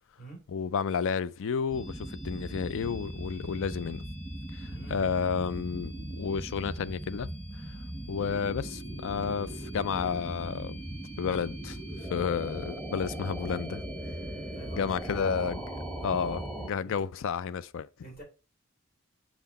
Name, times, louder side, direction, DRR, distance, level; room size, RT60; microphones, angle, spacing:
voice 1, 0.5-4.0 4.5-7.3 7.7-7.8 8.1-10.8 11.2-11.8 12.1-13.8 14.7-15.7 16.0-17.9, left 6 dB, 65° left, 0.4 m, -31 dB
sound 1, 1.7-16.7, right 1 dB, 5° left, 1.3 m, -39 dB
voice 2, 4.6-5.0 14.5-14.9 16.8-16.9 18.0-18.2, right 2 dB, 45° left, 3.4 m, -46 dB
5.8 x 4.5 x 4.0 m
head